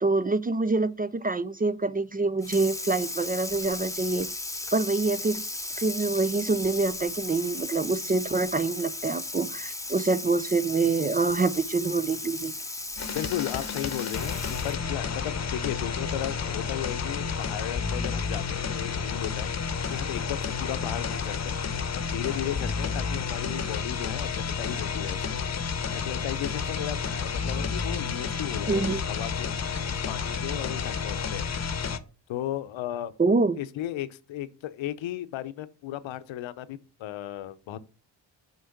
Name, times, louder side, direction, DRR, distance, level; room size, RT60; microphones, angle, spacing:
voice 1, 0.0-4.3 4.7-5.4 5.8-12.5 28.7-29.0 33.2-33.6, right 3 dB, 20° right, 0.4 m, -26 dB
Water tap faucet / Sink (filling or washing), 2.4-14.9, left 2 dB, 5° left, 0.8 m, -36 dB
sound 1, 13.0-32.0, left 6 dB, 35° left, 0.9 m, -31 dB
voice 2, 13.1-19.5 19.9-21.6 21.9-25.6 26.0-29.5 29.9-31.4 32.3-33.1 33.5-37.8, left 12 dB, 80° left, 0.8 m, -35 dB
6.5 x 4.5 x 5.8 m
cardioid pair, 70°, 45 cm